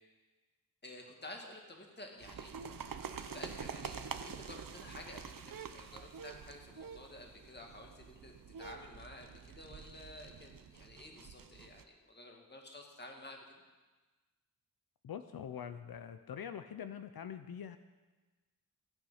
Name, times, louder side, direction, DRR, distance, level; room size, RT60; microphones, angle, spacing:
voice 1, 0.8-13.4, left 1 dB, 30° left, 1 dB, 2.0 m, -51 dB
sound 1, 2.2-11.8, right 6 dB, 65° right, 0.8 m, -47 dB
voice 2, 15.0-17.8, left 8 dB, 75° left, 10 dB, 0.6 m, -44 dB
15.0 x 9.1 x 5.7 m, 1.3 s
wide cardioid pair, 110°, 36 cm